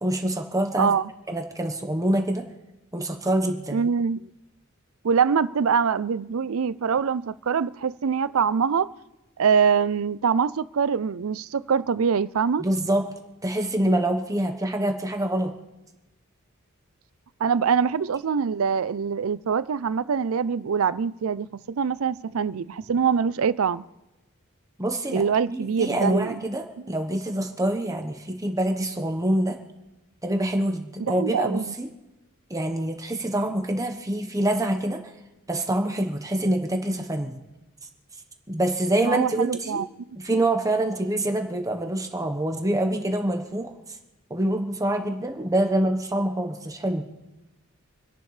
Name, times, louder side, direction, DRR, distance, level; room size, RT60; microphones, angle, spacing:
voice 1, 0.0-0.9 1.3-2.4 2.9-3.9 12.6-13.1 13.4-15.5 24.8-25.2 25.5-29.6 30.2-31.9 32.5-35.1 35.5-37.4 38.5-39.8 40.2-44.0 44.3-47.1, right 1 dB, 15° right, 1.1 m, -26 dB
voice 2, 0.8-1.1 3.7-4.2 5.0-8.9 9.4-12.7 17.4-23.8 25.1-26.4 31.0-31.7 39.0-39.9, right 6 dB, 70° right, 0.5 m, -24 dB
28.0 x 11.0 x 3.3 m
head